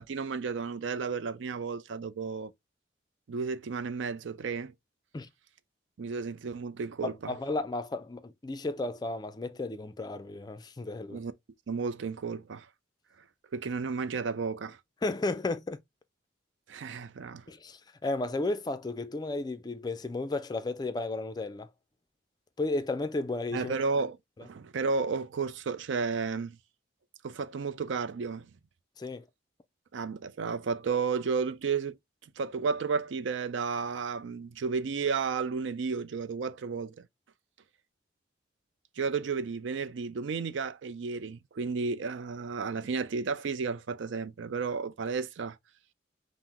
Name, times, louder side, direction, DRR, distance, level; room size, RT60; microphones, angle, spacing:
voice 1, 0.0-2.5 3.3-4.7 6.0-7.3 11.1-11.3 11.7-12.7 13.5-14.8 16.7-17.4 23.5-26.6 27.2-28.5 29.9-32.0 32.4-37.0 39.0-45.6, right 5 dB, 80° right, 0.4 m, -32 dB
voice 2, 7.0-11.2 15.0-15.8 17.5-21.7 22.6-23.7 29.0-29.3, left 2 dB, 20° left, 0.3 m, -33 dB
5.6 x 2.0 x 2.9 m
head